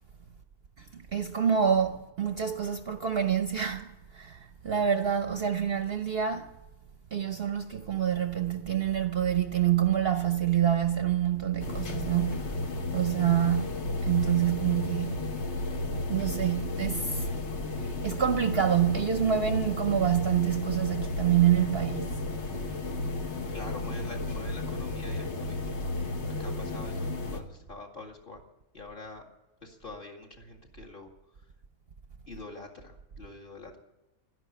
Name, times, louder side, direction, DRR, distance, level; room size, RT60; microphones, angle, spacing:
voice 1, 0.8-6.5 7.1-12.6 12.9-13.8 14.0-15.2 16.1-17.3 17.8-22.2, right 9 dB, 50° right, 0.9 m, -27 dB
sound 1, 11.6-27.4, left 2 dB, 55° left, 1.6 m, -33 dB
voice 2, 23.5-25.8 26.3-28.4 28.7-29.3 29.6-31.1 32.3-33.8, left 2 dB, 40° left, 2.4 m, -45 dB
12.5 x 11.0 x 9.4 m
omnidirectional pair, 1.5 m